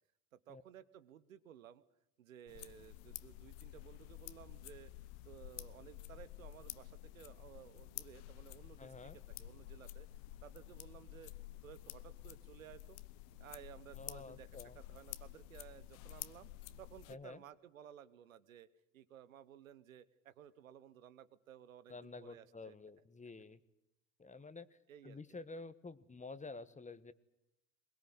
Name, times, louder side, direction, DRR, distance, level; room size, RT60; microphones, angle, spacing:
voice 1, 0.3-1.8 2.2-4.9 5.2-10.1 10.4-11.3 11.6-13.0 13.4-16.5 16.8-18.7 18.9-22.8 24.9-25.2, right 10 dB, 90° right, 16 dB, 1.1 m, -56 dB
sound 1, 2.5-17.1, left 16 dB, 65° left, 1.0 m, -51 dB
voice 2, 8.8-9.2 13.9-14.8 17.1-17.4 21.9-23.6 24.2-24.8 25.0-27.1, left 3 dB, 20° left, 14 dB, 1.4 m, -50 dB
22.5 x 20.5 x 9.9 m, 0.82 s
hypercardioid pair, 65°, 39 cm